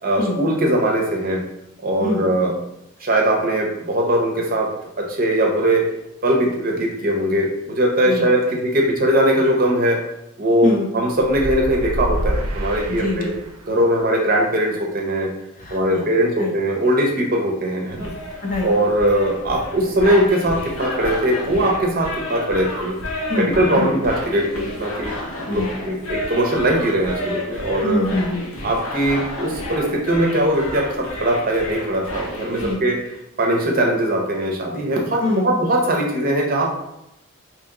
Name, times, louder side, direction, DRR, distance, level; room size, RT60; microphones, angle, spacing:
voice 1, 0.0-1.4 1.8-2.5 3.0-4.7 5.0-5.8 6.2-10.0 10.4-13.3 13.7-15.3 15.7-18.1 18.6-23.0 23.3-28.0 28.6-33.0 33.4-36.7, right 1 dB, 40° right, 0 dB, 0.6 m, -20 dB
sound 1, 11.2-13.8, right 1 dB, 90° right, 0.6 m, -27 dB
voice 2, 12.9-13.3 15.6-16.1 16.4-16.5 18.4-18.7 23.3-24.0 25.5-26.0 27.8-28.4 32.6-32.8 35.2-35.5, left 2 dB, 40° left, 0 dB, 0.6 m, -24 dB
sound 2, 17.9-32.7, left 1 dB, 75° left, 0.8 m, -31 dB
2.9 x 2.8 x 3.6 m, 0.85 s
head